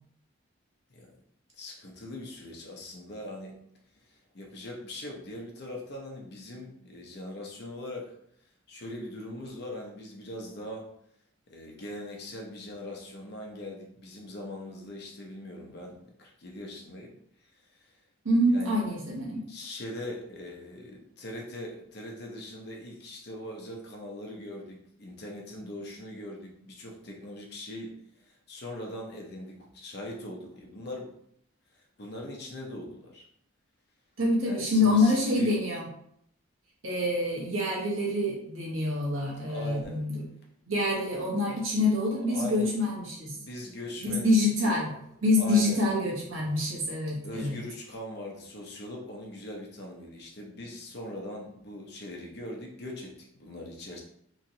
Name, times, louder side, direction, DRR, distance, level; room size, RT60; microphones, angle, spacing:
voice 1, 1.6-3.6 4.0-8.1 8.7-10.9 11.5-17.1 17.6-17.8 18.5-19.0 19.5-31.1 32.0-33.3 34.4-35.6 39.4-40.0 42.0-42.8 43.3-44.8 45.4-45.8 47.2-54.0, left 1 dB, 50° left, 0 dB, 0.7 m, -41 dB
voice 2, 18.2-19.4 34.2-35.9 36.8-40.2 40.7-43.3 44.0-44.9 45.2-47.6, left 1 dB, 75° right, -4 dB, 1.0 m, -26 dB
3.1 x 2.9 x 2.7 m, 0.70 s
head